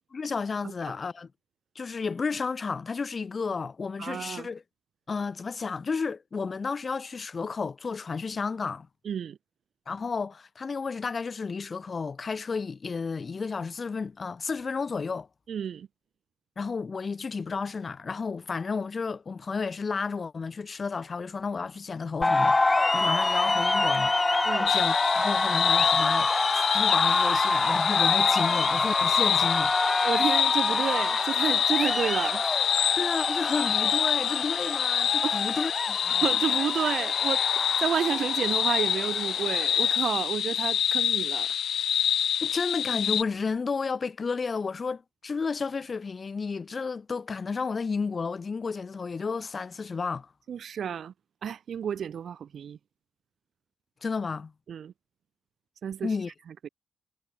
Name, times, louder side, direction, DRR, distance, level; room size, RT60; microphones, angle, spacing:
voice 1, 0.1-1.3 1.7-4.6 5.1-8.9 9.9-15.3 16.6-29.8 33.0-36.3 42.4-50.3 54.0-54.5 56.0-56.3, left 5 dB, 35° left, 1.4 m, -32 dB
voice 2, 4.0-4.5 9.0-9.4 15.5-15.9 24.4-24.7 28.5-28.6 30.0-32.4 35.2-35.5 36.1-41.5 50.5-51.1 51.4-52.8 54.7-54.9 55.8-56.2 56.6-56.7, right 8 dB, 55° right, 1.7 m, -31 dB
sound 1, 22.2-40.0, left 2 dB, 20° left, 0.8 m, -27 dB
sound 2, 24.7-43.2, left 9 dB, 65° left, 1.6 m, -27 dB
cardioid pair, 90°, 0 cm